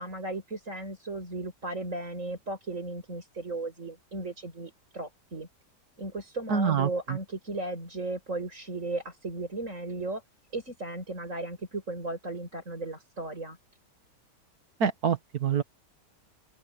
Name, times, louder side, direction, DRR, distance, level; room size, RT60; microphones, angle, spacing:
voice 1, 0.0-5.5 6.0-10.2 10.5-13.6, right 2 dB, 45° right, 7.3 m, -36 dB
voice 2, 6.5-7.2 14.8-15.6, right 7 dB, 60° right, 1.9 m, -26 dB
open air
omnidirectional pair, 1.8 m